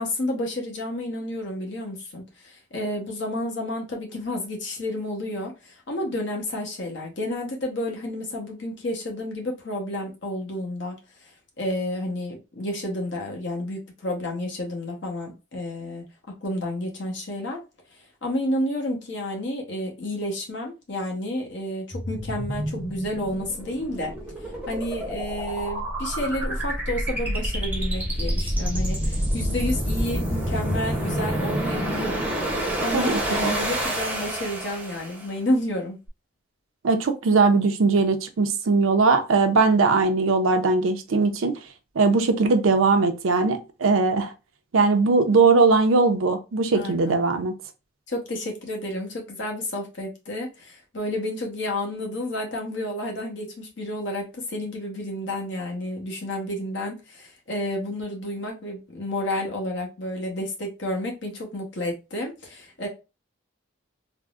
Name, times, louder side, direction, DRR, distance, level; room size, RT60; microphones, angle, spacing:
voice 1, 0.0-11.0 11.6-16.0 16.4-17.6 18.2-24.1 24.7-32.3 32.5-36.0 46.7-47.2 48.1-62.9, left 1 dB, 60° left, 0.9 m, -30 dB
sound 1, 21.9-35.3, equal, 10° right, 0.6 m, -28 dB
voice 2, 32.9-33.6 36.8-41.6 42.0-44.3 44.7-47.5, right 4 dB, 85° right, 0.5 m, -20 dB
3.5 x 2.0 x 2.3 m
head